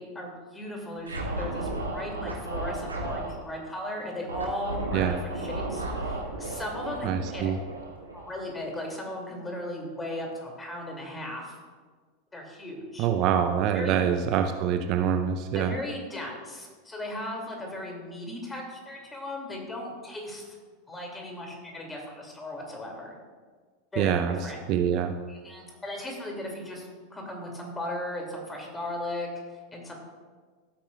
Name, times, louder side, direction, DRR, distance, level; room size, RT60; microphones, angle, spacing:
voice 1, 0.0-7.6 8.1-11.6 12.3-13.1 13.7-14.0 15.5-20.4 20.9-23.1 23.9-24.6 25.3-29.3 29.7-29.9, left 1 dB, 15° left, 0 dB, 2.6 m, -37 dB
Scratching (performance technique), 1.0-3.3 4.3-8.6, right 2 dB, 85° right, 1.6 m, -34 dB
voice 2, 7.0-7.6 13.0-15.7 24.0-25.1, right 8 dB, 45° right, 7 dB, 0.5 m, -25 dB
16.5 x 8.6 x 2.4 m, 1.5 s
figure-of-eight pair, 85°, 0 cm